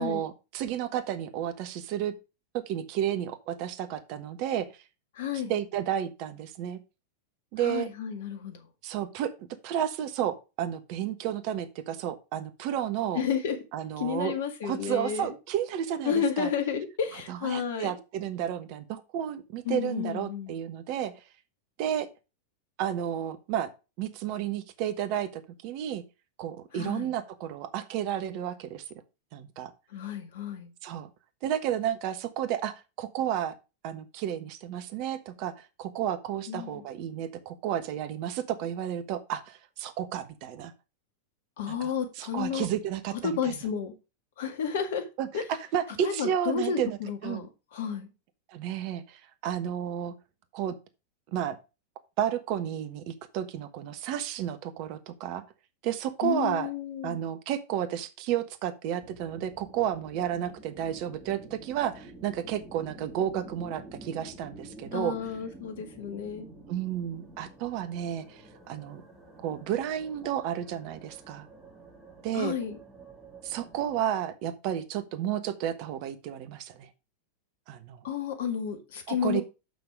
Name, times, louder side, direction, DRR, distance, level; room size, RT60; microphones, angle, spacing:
voice 1, 0.0-2.1 2.5-4.7 5.5-6.8 7.5-7.9 8.8-9.3 9.6-13.2 13.7-14.3 14.6-16.5 17.3-21.2 21.8-22.1 22.8-23.7 24.0-26.0 26.4-28.8 29.3-29.7 30.8-31.1 31.4-33.5 33.8-40.7 41.8-41.9 42.2-43.5 45.2-45.3 45.7-47.0 47.2-47.4 48.5-50.1 50.5-50.8 51.3-51.6 52.2-55.4 55.8-56.7 57.0-65.2 66.7-69.0 69.4-71.5 72.2-72.5 73.4-76.9 77.7-78.0 79.1-79.4, right 10 dB, 45° right, 11 dB, 1.1 m, -32 dB
voice 2, 5.1-5.6 7.6-8.7 13.1-13.6 14.0-15.3 16.1-18.0 19.7-20.5 26.7-27.1 29.9-30.7 36.5-36.8 41.6-42.7 43.2-43.9 44.4-45.1 45.3-45.4 46.0-48.1 56.2-57.2 64.9-66.5 72.3-72.8 78.0-79.4, left 7 dB, 55° left, 7 dB, 1.8 m, -31 dB
sound 1, 59.0-74.0, right 2 dB, 10° right, 3.2 m, -49 dB
6.8 x 6.2 x 4.7 m, 0.29 s
figure-of-eight pair, 90°, 0 cm